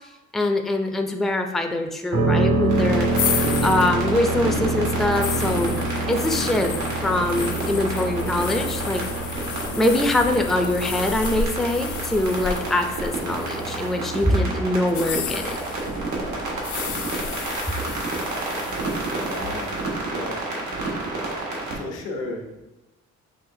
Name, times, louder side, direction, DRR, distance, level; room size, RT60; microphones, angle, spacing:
voice 1, 0.3-3.1 3.6-5.7 6.1-6.7 7.0-9.0 9.7-15.6, left 1 dB, ahead, 4 dB, 0.4 m, -23 dB
sound 1, 2.1-18.0, right 2 dB, 65° right, 1.2 m, -28 dB
sound 2, 2.7-21.8, right 2 dB, 85° right, 1.4 m, -30 dB
sound 3, 3.1-14.1 14.8-19.7, left 7 dB, 70° left, 0.6 m, -33 dB
voice 2, 19.2-19.7 20.1-20.4 21.7-22.6, left 2 dB, 90° left, 2 dB, 0.9 m, -33 dB
5.6 x 3.2 x 2.6 m, 1.0 s
cardioid pair, 90°, 30 cm